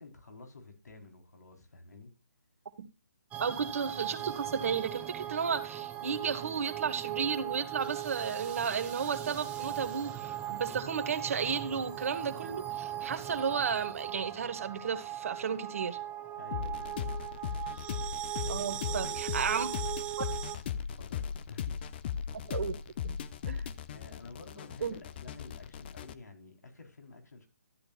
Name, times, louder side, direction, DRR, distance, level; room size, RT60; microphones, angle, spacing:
voice 1, 0.0-2.1 16.4-17.1 17.4-17.5 18.3-20.0 20.4-21.9 23.9-27.5, left 3 dB, 80° left, 4.3 m, -51 dB
sound 1, 3.3-20.6, right 12 dB, 15° right, 1.1 m, -39 dB
voice 2, 3.4-16.0 18.5-19.7 20.2-20.3 22.5-22.7 23.0-23.2 23.5-23.7 24.8-24.9, right 6 dB, 55° right, 1.6 m, -33 dB
sound 2, 16.5-26.1, left 8 dB, 35° left, 0.8 m, -38 dB
13.0 x 8.7 x 2.5 m
figure-of-eight pair, 145°, 9 cm